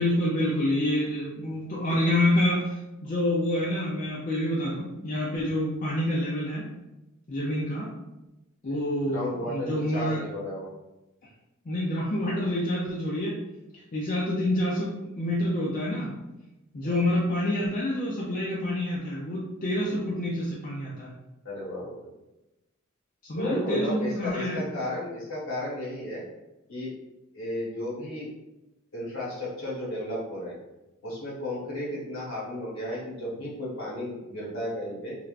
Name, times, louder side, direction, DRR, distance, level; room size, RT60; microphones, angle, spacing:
voice 1, 0.0-6.7 7.3-7.9 8.6-10.3 11.7-13.4 13.7-16.1 16.7-21.1 23.3-24.7, left 1 dB, 40° left, -5 dB, 0.4 m, -27 dB
voice 2, 8.7-10.7 16.8-17.0 19.7-19.8 21.4-22.1 23.4-26.2 26.7-26.9 27.3-28.3 28.9-30.6 31.0-35.2, left 1 dB, 65° left, -6 dB, 1.2 m, -34 dB
3.2 x 2.4 x 2.4 m, 0.97 s
head